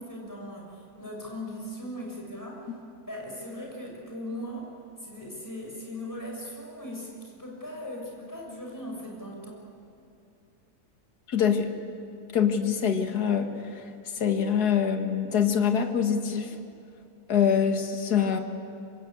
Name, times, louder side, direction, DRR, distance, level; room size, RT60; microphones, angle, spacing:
voice 1, 0.0-2.7 3.1-4.7 5.0-9.6, left 1 dB, 10° left, -1 dB, 6.1 m, -39 dB
voice 2, 11.3-11.7 12.3-13.9 14.1-16.6 17.3-18.4, left 7 dB, 80° left, 5 dB, 2.2 m, -25 dB
26.0 x 25.5 x 8.7 m, 2.7 s
omnidirectional pair, 1.7 m